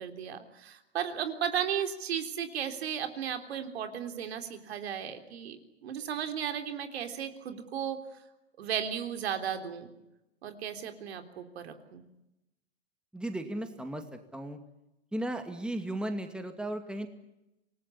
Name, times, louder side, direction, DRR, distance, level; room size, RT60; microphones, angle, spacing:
voice 1, 0.0-8.1 8.6-9.9 10.4-12.0, right 8 dB, 70° right, 7 dB, 3.6 m, -35 dB
voice 2, 13.1-14.6 15.1-17.1, right 1 dB, 5° right, 7 dB, 2.3 m, -35 dB
27.0 x 19.0 x 9.8 m, 0.91 s
hypercardioid pair, 120°, 32 cm